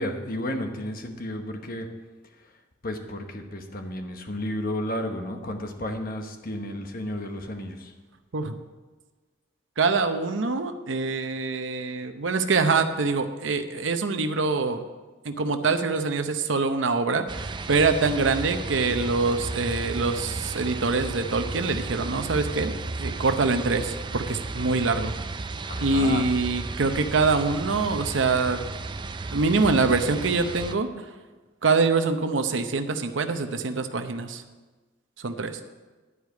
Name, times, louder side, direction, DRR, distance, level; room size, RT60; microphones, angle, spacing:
voice 1, 0.0-1.9 2.4-2.5 2.8-7.9 25.7-26.3, left 1 dB, 50° left, 5 dB, 1.1 m, -32 dB
voice 2, 9.8-14.9 15.2-22.7 23.0-25.1 25.8-28.6 29.3-31.1 31.6-34.4 35.2-35.6, right 4 dB, 85° right, 8 dB, 0.7 m, -25 dB
sound 1, 17.3-30.7, right 3 dB, 25° right, 0.4 m, -34 dB
11.0 x 4.9 x 8.1 m, 1.3 s
head